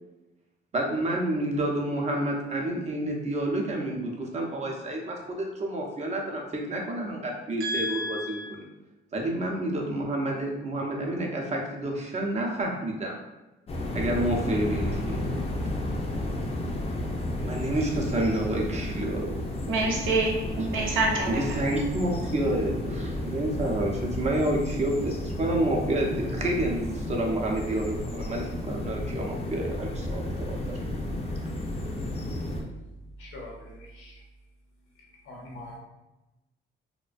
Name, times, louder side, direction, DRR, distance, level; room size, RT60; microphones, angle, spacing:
voice 1, 0.7-8.7 9.1-13.1 13.9-15.3 17.4-19.4 20.6-20.7 21.3-30.6, right 1 dB, 35° right, 0 dB, 0.6 m, -29 dB
voice 2, 7.6-8.5 19.7-20.3 20.7-21.6, right 2 dB, 80° right, -1 dB, 0.6 m, -27 dB
sound 1, 13.7-32.6, left 1 dB, 30° left, 0.4 m, -32 dB
voice 3, 33.2-34.1 35.3-35.8, left 1 dB, 90° left, -2 dB, 0.8 m, -43 dB
2.4 x 2.1 x 2.4 m, 1.0 s
cardioid pair, 90°, 20 cm